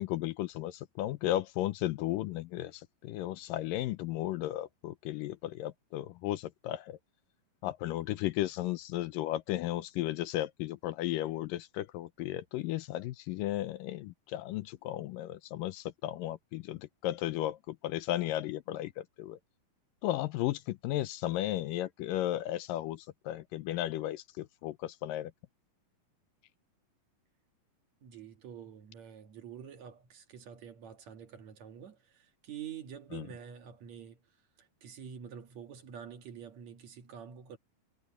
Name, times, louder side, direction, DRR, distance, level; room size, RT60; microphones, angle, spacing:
voice 1, 0.0-7.0 7.6-19.4 20.0-25.3 33.1-33.2, left 14 dB, 80° left, 2.3 m, -35 dB
voice 2, 28.0-34.2 34.6-37.6, right 8 dB, 55° right, 2.5 m, -47 dB
omnidirectional pair, 4.1 m